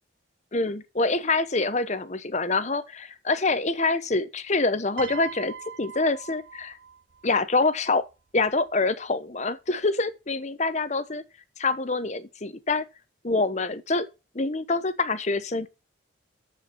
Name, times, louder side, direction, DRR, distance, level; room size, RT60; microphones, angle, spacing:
voice 1, 0.5-6.8 7.2-8.0 8.3-11.2 11.6-12.8 13.2-14.1 14.3-15.7, left 3 dB, 35° left, 0.9 m, -26 dB
Piano, 5.0-7.3 8.4-8.6, right 7 dB, 70° right, 0.6 m, -40 dB
13.5 x 4.9 x 5.7 m
head